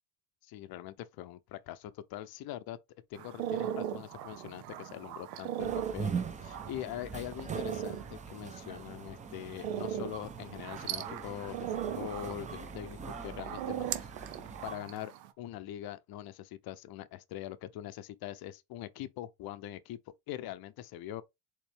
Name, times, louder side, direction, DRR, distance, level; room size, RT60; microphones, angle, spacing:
voice 1, 0.4-2.8 3.1-6.1 6.4-14.4 14.6-20.0 20.3-21.2, left 12 dB, 50° left, 0.6 m, -43 dB
sound 1, 3.1-15.3, right 11 dB, 85° right, 0.7 m, -39 dB
sound 2, 5.6-14.8, right 5 dB, 15° right, 0.6 m, -42 dB
4.2 x 3.0 x 3.3 m
supercardioid pair, 80°, 47 cm